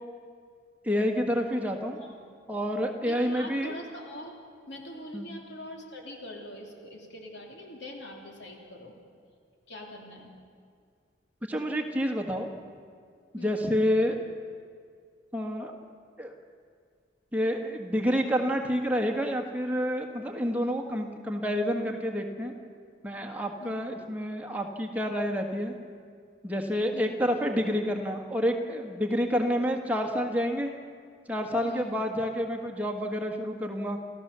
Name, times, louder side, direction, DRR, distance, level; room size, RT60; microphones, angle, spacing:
voice 1, 0.8-2.0 2.5-3.7 5.1-5.3 11.5-12.5 13.3-14.2 15.3-15.7 16.2-16.3 17.3-22.5 23.0-25.7 26.4-30.7 31.3-34.0, equal, 10° right, 2 dB, 1.5 m, -28 dB
voice 2, 2.0-2.3 3.0-4.3 4.7-8.9 9.7-10.3 13.4-13.6 23.6-23.8 26.9-27.2 31.6-32.0, left 1 dB, 70° left, 0 dB, 3.2 m, -43 dB
29.0 x 14.5 x 6.9 m, 2.1 s
head